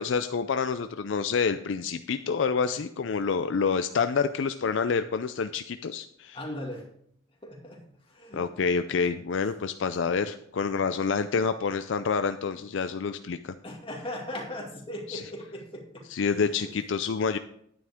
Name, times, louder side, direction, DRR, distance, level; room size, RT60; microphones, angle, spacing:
voice 1, 0.0-6.4 8.3-13.5 15.1-15.2 16.1-17.4, left 5 dB, 65° left, 10 dB, 0.4 m, -28 dB
voice 2, 6.3-6.9 7.4-8.5 13.6-16.0 16.6-16.7, left 1 dB, 25° left, -1 dB, 2.2 m, -38 dB
11.0 x 9.6 x 3.6 m, 0.69 s
head